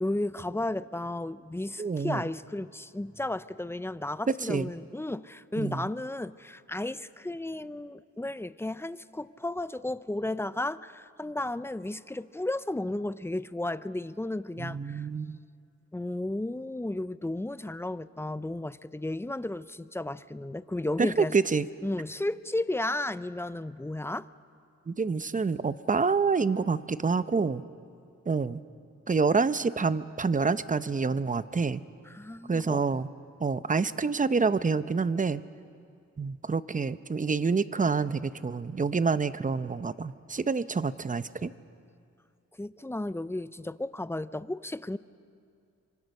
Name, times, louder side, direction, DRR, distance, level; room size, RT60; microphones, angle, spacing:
voice 1, 0.0-15.1 15.9-21.3 21.8-24.3 32.1-33.0 42.6-45.0, left 1 dB, 10° left, 15 dB, 0.5 m, -33 dB
voice 2, 1.8-2.2 4.3-4.7 5.6-5.9 14.6-15.4 21.0-21.7 24.9-27.6 28.3-28.6 29.1-31.8 32.5-33.1 33.4-35.4 36.2-41.5, right 4 dB, 25° right, 14 dB, 0.7 m, -27 dB
26.5 x 25.0 x 6.6 m, 2.4 s
cardioid pair, 85°, 29 cm